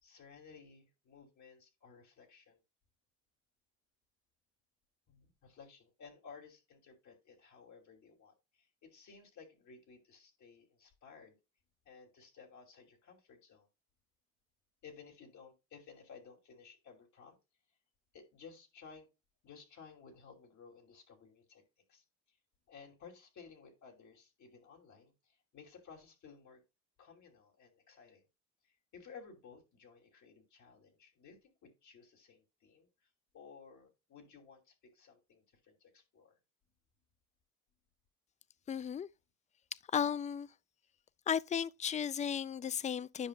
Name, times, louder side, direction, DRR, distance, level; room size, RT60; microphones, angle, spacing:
voice 1, 0.0-2.6 5.1-11.4 11.8-13.7 14.8-17.4 18.1-19.1 19.4-21.6 21.9-22.4 22.7-26.6 27.0-28.2 28.6-32.9 33.3-36.4, left 5 dB, 70° left, 2.9 m, -57 dB
voice 2, 38.7-39.1 39.9-40.5 41.3-43.3, left 8 dB, 25° left, 0.4 m, -34 dB
10.0 x 6.0 x 2.3 m
cardioid pair, 90°, 30 cm